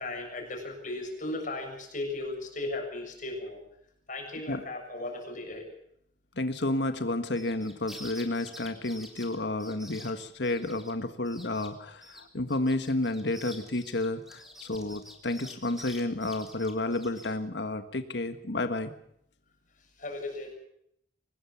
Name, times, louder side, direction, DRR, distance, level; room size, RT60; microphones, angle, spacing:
voice 1, 0.0-3.6 4.1-5.7 20.0-20.5, left 2 dB, 45° left, 2 dB, 7.0 m, -36 dB
voice 2, 6.4-18.9, left 2 dB, 75° left, 9 dB, 1.6 m, -31 dB
sound 1, 7.3-10.9 11.2-11.7 12.0-17.3, left 1 dB, ahead, 3.8 m, -48 dB
24.0 x 19.5 x 7.1 m, 0.70 s
head